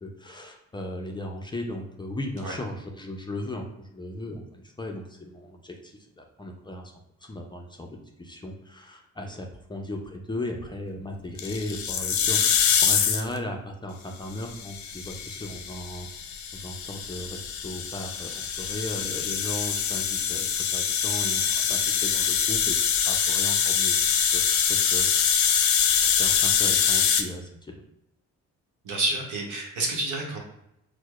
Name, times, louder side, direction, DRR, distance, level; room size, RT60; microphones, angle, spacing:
voice 1, 0.0-6.9 7.2-16.1 16.5-20.5 20.7-24.0 24.3-24.4 24.7-25.1 25.5-25.7 26.0-27.8, left 1 dB, 15° left, 1 dB, 0.4 m, -36 dB
sound 1, 11.4-13.4 14.4-27.2, left 7 dB, 70° left, 0.5 m, -24 dB
voice 2, 28.8-30.4, right 2 dB, 80° right, 0 dB, 0.9 m, -29 dB
4.5 x 2.1 x 2.3 m, 0.83 s
cardioid pair, 90°, 30 cm